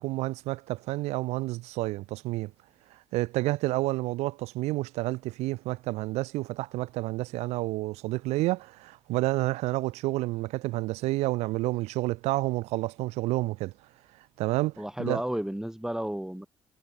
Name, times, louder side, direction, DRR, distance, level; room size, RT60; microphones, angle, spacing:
voice 1, 0.0-2.5 2.9-13.7 14.4-14.7 15.0-15.2, right 19 dB, 80° right, 1.6 m, -29 dB
voice 2, 14.8-16.5, right 1 dB, 5° right, 5.6 m, -32 dB
supercardioid pair, 60°, 11 cm